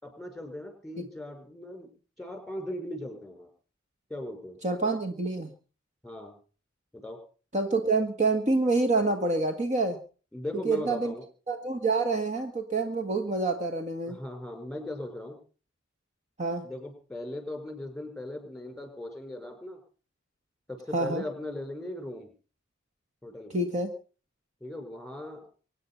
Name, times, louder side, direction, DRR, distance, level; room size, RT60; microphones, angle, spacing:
voice 1, 0.0-1.9 2.2-3.5 4.1-4.6 6.0-6.3 6.9-7.2 10.3-11.2 14.1-15.4 16.6-19.8 20.7-22.3 23.2-23.6 24.6-25.4, left 1 dB, ahead, 5 dB, 5.2 m, -38 dB
voice 2, 4.6-5.5 7.5-10.0 10.6-11.1 11.5-14.2 16.4-16.6 20.9-21.2 23.5-23.9, right 3 dB, 35° right, 5 dB, 1.6 m, -27 dB
24.5 x 9.6 x 5.6 m, 0.40 s
head